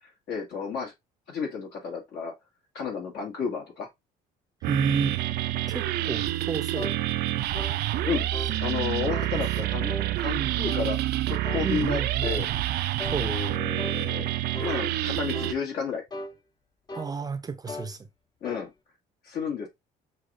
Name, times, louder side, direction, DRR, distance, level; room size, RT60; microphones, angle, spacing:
voice 1, 0.3-0.9 1.3-2.3 2.7-3.9 8.1-8.3 8.6-9.9 10.2-12.5 13.2-14.3 14.6-16.0 18.4-18.7 19.2-19.7, left 6 dB, 70° left, 1.9 m, -32 dB
sound 1, 4.6-15.5, right 14 dB, 70° right, 0.4 m, -28 dB
voice 2, 4.7-5.2 5.7-6.9 10.3-10.6 11.6-12.4 13.1-13.3 16.9-18.0, right 5 dB, 20° right, 0.5 m, -31 dB
sound 2, 6.8-7.0 7.5-7.8 8.3-8.6 9.1-9.3 9.9-10.1 10.7-10.9 11.4-11.7 12.2-12.4 13.0-13.2 13.8-14.0 14.5-14.8 15.3-15.6 16.1-16.4 16.9-17.2 17.7-17.9 18.4-18.7, left 1 dB, 25° left, 0.6 m, -37 dB
6.3 x 2.4 x 2.5 m
cardioid pair, 110°, 17 cm